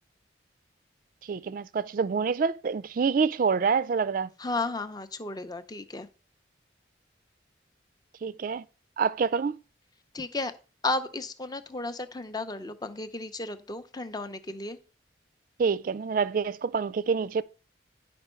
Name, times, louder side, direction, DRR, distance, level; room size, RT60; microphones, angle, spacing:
voice 1, 1.2-4.3 8.2-8.7 9.0-9.6 15.6-17.4, right 5 dB, 45° right, 0.3 m, -27 dB
voice 2, 4.4-6.1 10.1-10.5 10.8-14.8, left 2 dB, 20° left, 0.6 m, -33 dB
10.0 x 5.3 x 4.4 m
head